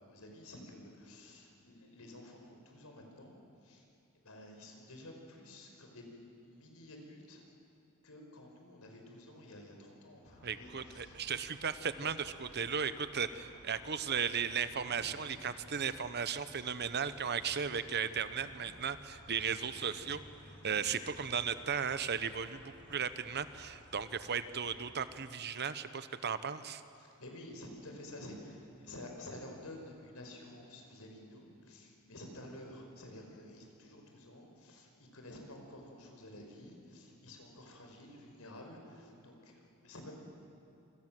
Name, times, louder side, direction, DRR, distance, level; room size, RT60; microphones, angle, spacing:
voice 1, 0.0-3.4 3.6-3.9 4.2-7.4 8.0-11.2 14.0-14.1 15.0-15.3 27.0-40.1, left 1 dB, 70° left, 2 dB, 5.4 m, -51 dB
sound 1, 10.2-24.9, equal, 40° left, 7.0 m, -57 dB
voice 2, 10.4-20.2 20.6-22.6 22.9-26.8, right 6 dB, 50° right, 12 dB, 1.0 m, -36 dB
27.0 x 25.0 x 7.7 m, 2.8 s
head